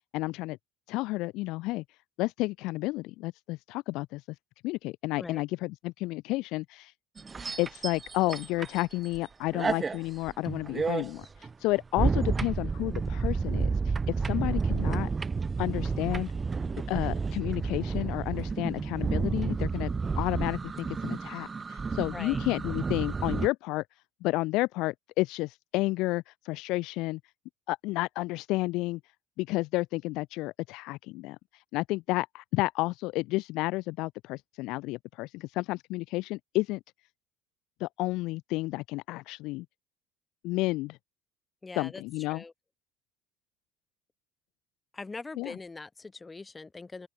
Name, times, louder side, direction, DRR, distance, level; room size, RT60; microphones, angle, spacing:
voice 1, 0.1-0.6 0.9-1.8 2.2-4.2 4.6-6.9 7.6-11.3 11.6-13.9 14.2-15.1 15.6-16.3 16.9-19.9 20.2-23.8 24.2-27.2 27.7-29.0 29.4-31.4 31.7-36.8 37.8-39.6 40.4-41.0 41.8-42.4 45.4-45.5, left 21 dB, 60° left, 1.0 m, -31 dB
sound 1, 7.2-9.2 9.5-23.5, right 4 dB, 15° right, 1.3 m, -31 dB
voice 2, 22.1-22.4 41.6-42.0 42.3-42.5 44.9-47.1, left 3 dB, 15° left, 3.2 m, -42 dB
cardioid pair, 155°, 0 cm